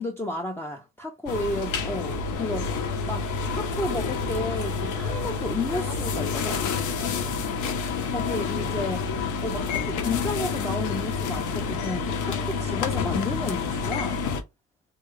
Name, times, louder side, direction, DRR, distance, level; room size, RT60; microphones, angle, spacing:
voice 1, 0.0-2.7 3.0-6.6 8.1-9.1 9.4-14.2, left 2 dB, 10° left, 0.4 m, -32 dB
sound 1, 1.3-14.4, left 5 dB, 85° left, 0.6 m, -28 dB
2.7 x 2.3 x 3.0 m
cardioid pair, 90°, 30 cm